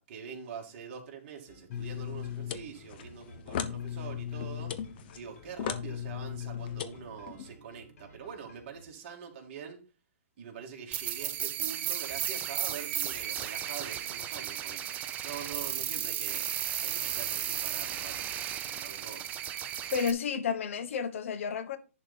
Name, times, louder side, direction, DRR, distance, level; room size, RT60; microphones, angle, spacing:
voice 1, 0.0-4.8 5.1-9.8 10.4-16.5 16.8-19.3, right 7 dB, 45° right, 2.6 m, -45 dB
sound 1, 1.5-8.9, left 1 dB, 80° left, 2.9 m, -55 dB
sound 2, 1.7-7.5, left 9 dB, 40° left, 0.8 m, -37 dB
sound 3, 10.9-20.1, right 10 dB, 20° right, 0.7 m, -34 dB
voice 2, 19.9-21.8, left 6 dB, 60° left, 1.3 m, -31 dB
10.5 x 4.1 x 5.4 m
hypercardioid pair, 155°, 8 cm